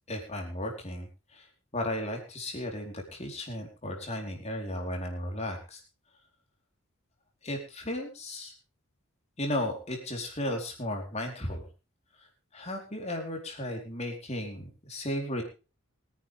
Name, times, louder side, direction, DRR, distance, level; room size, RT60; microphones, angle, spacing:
voice 1, 0.1-1.5 1.7-5.8 7.4-8.5 9.4-11.7 12.2-12.3 12.5-15.4, left 1 dB, 30° left, 2 dB, 4.5 m, -35 dB
23.5 x 10.5 x 3.7 m, 0.34 s
head